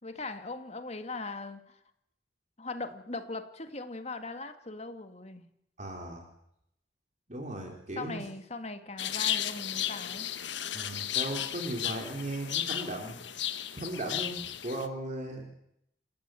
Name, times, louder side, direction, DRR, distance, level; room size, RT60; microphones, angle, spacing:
voice 1, 0.0-1.8 2.6-5.4 8.0-10.3, left 3 dB, 35° left, 8 dB, 2.2 m, -40 dB
voice 2, 5.8-6.2 7.3-8.3 10.7-13.5 13.8-15.5, right 1 dB, 40° right, 2 dB, 3.9 m, -37 dB
sound 1, 9.0-14.9, left 11 dB, 75° left, 1.4 m, -34 dB
28.0 x 14.0 x 9.2 m, 0.76 s
head